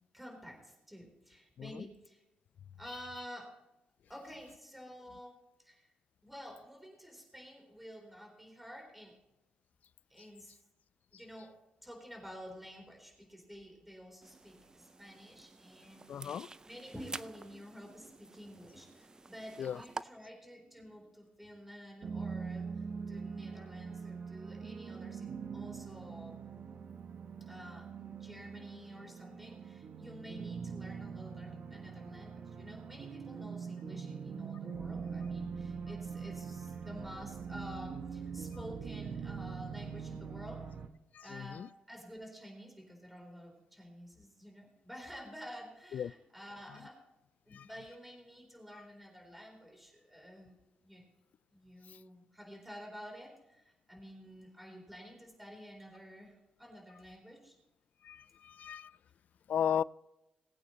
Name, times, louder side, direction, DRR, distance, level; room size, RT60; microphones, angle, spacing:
voice 1, 0.1-2.2 2.8-3.5 4.1-5.4 5.6-5.9 6.2-9.2 10.1-10.6 11.1-11.5 11.8-22.7 23.1-26.4 27.4-40.6 41.2-47.0 47.5-50.5 50.8-51.0 51.5-56.3 56.6-57.6, equal, 5° right, 4.0 m, -50 dB
sound 1, 14.2-20.0, right 3 dB, 25° right, 0.5 m, -49 dB
voice 2, 16.1-16.5 19.6-19.8 41.1-41.7 45.9-46.1 47.5-47.7 58.0-58.9 59.5-59.8, left 9 dB, 65° left, 0.3 m, -35 dB
sound 2, 22.0-40.9, right 6 dB, 60° right, 1.0 m, -43 dB
21.0 x 8.7 x 3.1 m
cardioid pair, 80°, 3 cm